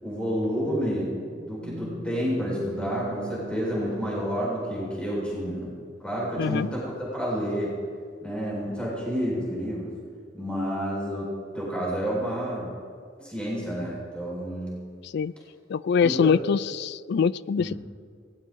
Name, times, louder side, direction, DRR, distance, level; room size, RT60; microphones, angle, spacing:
voice 1, 0.0-5.7 6.0-7.7 8.2-9.9 10.3-12.7 13.2-14.8 16.0-16.3 17.6-17.8, equal, 5° left, -5 dB, 4.5 m, -29 dB
sound 1, 1.3-5.4, right 3 dB, 65° right, 1.6 m, -42 dB
voice 2, 6.4-6.7 15.0-15.3 15.7-17.8, left 6 dB, 60° left, 19 dB, 0.3 m, -24 dB
20.0 x 17.0 x 3.7 m, 2.1 s
head